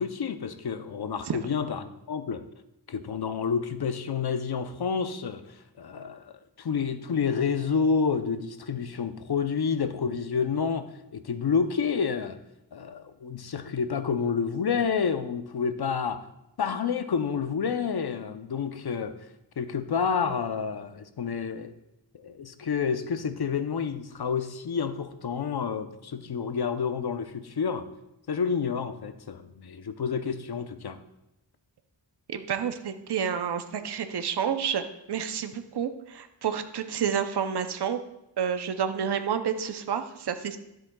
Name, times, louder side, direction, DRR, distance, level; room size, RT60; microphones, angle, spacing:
voice 1, 0.0-2.4 2.9-5.4 5.8-6.3 6.6-12.4 12.7-16.2 16.6-19.1 19.6-21.7 22.1-27.9 28.3-31.0, left 6 dB, 55° left, 10 dB, 0.7 m, -29 dB
voice 2, 32.3-34.8 35.1-38.0 38.4-40.6, right 8 dB, 60° right, 8 dB, 0.7 m, -29 dB
12.5 x 7.7 x 2.3 m, 0.88 s
wide cardioid pair, 75°, 45 cm